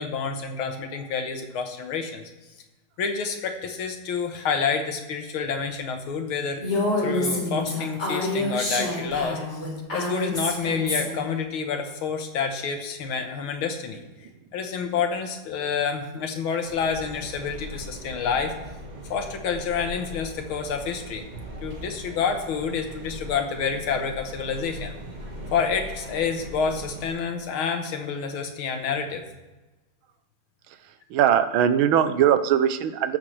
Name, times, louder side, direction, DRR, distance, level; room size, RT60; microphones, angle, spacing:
voice 1, 0.0-2.2 3.0-6.6 7.0-9.6 9.9-18.5 19.1-21.2 21.6-25.0 25.5-29.3, left 6 dB, 90° left, 5 dB, 2.0 m, -28 dB
Female speech woman speaking, 6.6-11.3, left 2 dB, 35° left, 4.1 m, -27 dB
sound 1, 16.6-27.1, equal, 25° right, 1.3 m, -40 dB
voice 2, 30.8-33.2, right 9 dB, 80° right, 11 dB, 1.5 m, -21 dB
18.5 x 7.4 x 3.3 m, 1.1 s
omnidirectional pair, 2.2 m